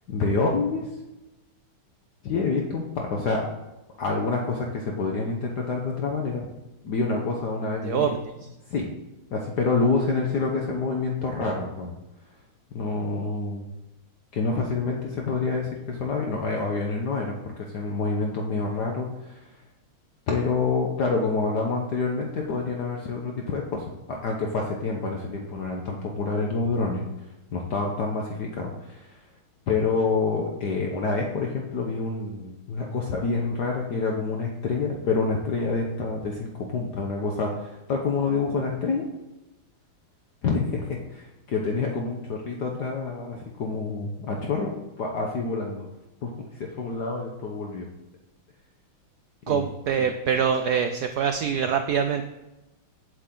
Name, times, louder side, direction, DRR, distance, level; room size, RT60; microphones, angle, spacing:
voice 1, 0.1-0.9 2.2-3.5 4.0-6.5 6.8-8.1 8.7-8.9 9.3-12.0 12.7-13.7 14.3-19.5 20.3-27.1 27.5-29.2 29.7-39.1 40.4-45.9 46.2-47.9 49.4-49.7, left 4 dB, 60° left, 0 dB, 1.4 m, -27 dB
voice 2, 7.8-8.5 49.5-52.2, right 7 dB, 85° right, 7 dB, 0.8 m, -25 dB
8.8 x 8.0 x 3.8 m, 0.99 s
omnidirectional pair, 2.3 m